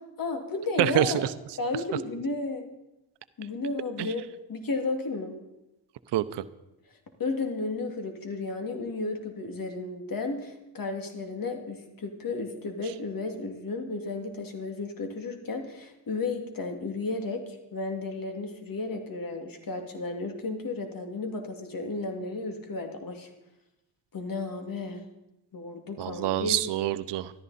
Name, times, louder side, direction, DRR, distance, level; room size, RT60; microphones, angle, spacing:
voice 1, 0.2-1.2 1.6-2.7 3.4-5.4 7.2-23.3 24.1-25.0 25.5-26.6, left 3 dB, 50° left, 5 dB, 2.6 m, -33 dB
voice 2, 0.8-1.3 4.0-4.1 6.1-6.4 26.0-27.4, right 13 dB, 70° right, 14 dB, 0.8 m, -26 dB
14.0 x 13.5 x 4.2 m, 0.94 s
supercardioid pair, 65°, 43 cm